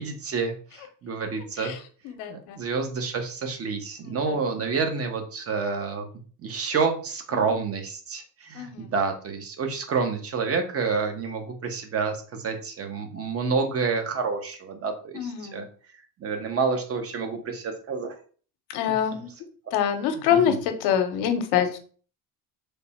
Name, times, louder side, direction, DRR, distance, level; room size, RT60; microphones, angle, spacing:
voice 1, 0.0-1.7 2.3-6.1 6.4-15.6 16.2-18.1 18.9-19.0 20.1-20.6, right 5 dB, 40° right, 5 dB, 0.9 m, -29 dB
voice 2, 2.0-2.6 4.0-4.4 7.3-7.4 8.5-8.9 15.1-15.6 18.7-19.3 19.7-21.8, left 9 dB, 80° left, 7 dB, 0.7 m, -25 dB
3.4 x 2.0 x 4.2 m, 0.42 s
supercardioid pair, 100°, 37 cm